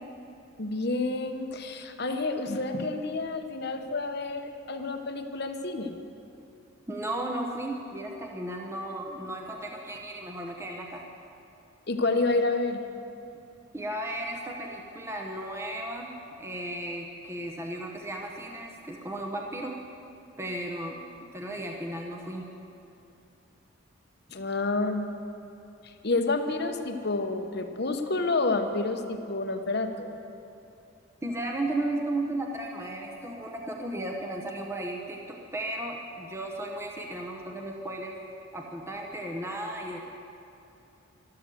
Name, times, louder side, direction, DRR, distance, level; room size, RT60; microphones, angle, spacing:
voice 1, 0.6-5.9 11.9-12.8 24.3-25.1 26.0-30.1, left 3 dB, 50° left, 6 dB, 0.9 m, -29 dB
voice 2, 6.9-11.0 13.7-16.1 16.4-19.8 20.4-21.0 21.3-22.5 31.2-38.2 38.5-40.1, right 1 dB, 10° right, 0 dB, 0.9 m, -35 dB
13.0 x 12.5 x 7.7 m, 2.8 s
head